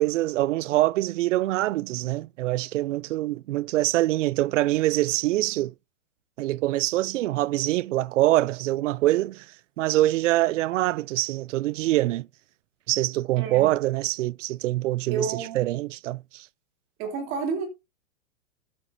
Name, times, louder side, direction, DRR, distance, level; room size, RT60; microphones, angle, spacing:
voice 1, 0.0-5.7 6.4-9.5 9.8-12.3 12.9-16.5, right 16 dB, 75° right, 0.5 m, -24 dB
voice 2, 13.3-13.7 15.1-15.7 17.0-17.7, right 5 dB, 30° right, 3.3 m, -30 dB
12.5 x 8.9 x 2.7 m
supercardioid pair, 160°, 38 cm